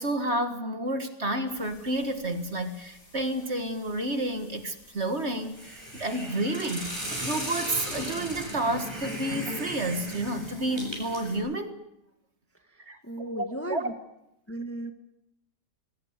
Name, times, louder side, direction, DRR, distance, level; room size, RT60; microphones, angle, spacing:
voice 1, 0.0-11.7 12.9-13.9, right 1 dB, 40° right, 8 dB, 2.0 m, -30 dB
sound 1, 1.5-11.4, left 2 dB, 85° left, 6.3 m, -54 dB
Hiss, 5.6-11.4, equal, 15° right, 7.5 m, -36 dB
voice 2, 12.7-13.9 14.5-14.9, right 1 dB, 10° left, 7 dB, 1.6 m, -36 dB
22.5 x 20.0 x 8.1 m, 0.82 s
omnidirectional pair, 1.8 m